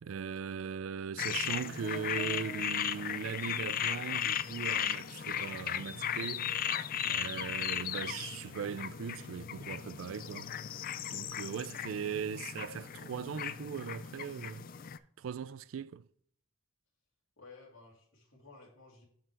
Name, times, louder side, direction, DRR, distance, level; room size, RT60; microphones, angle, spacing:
voice 1, 0.0-6.5 7.0-10.5 11.0-14.6 15.2-16.1, right 7 dB, 90° right, 0.4 m, -39 dB
sound 1, 1.2-15.0, left 9 dB, 45° left, 0.4 m, -36 dB
voice 2, 17.4-19.0, left 3 dB, 90° left, 2.4 m, -55 dB
7.4 x 5.8 x 4.5 m
head